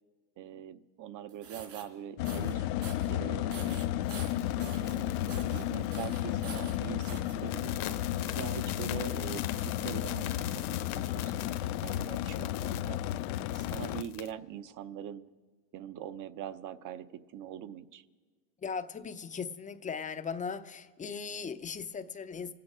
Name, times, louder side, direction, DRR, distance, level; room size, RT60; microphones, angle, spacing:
voice 1, 0.4-3.9 4.6-7.8 8.2-13.0 13.5-15.2 15.7-18.1, right 10 dB, 40° right, 13 dB, 0.8 m, -43 dB
sound 1, 1.3-1.8 2.2-2.5 2.8-3.1 3.5-5.0 5.3-5.6 5.9-7.3, right 5 dB, 65° right, 3.6 m, -46 dB
sound 2, 2.2-14.0, left 13 dB, 65° left, 0.6 m, -33 dB
sound 3, 4.0-6.6 6.8-7.1 7.4-14.3, left 12 dB, 45° left, 1.0 m, -44 dB
voice 2, 18.6-22.5, left 6 dB, 15° left, 9 dB, 0.6 m, -38 dB
26.0 x 8.8 x 5.0 m, 1.5 s
supercardioid pair, 115°, 48 cm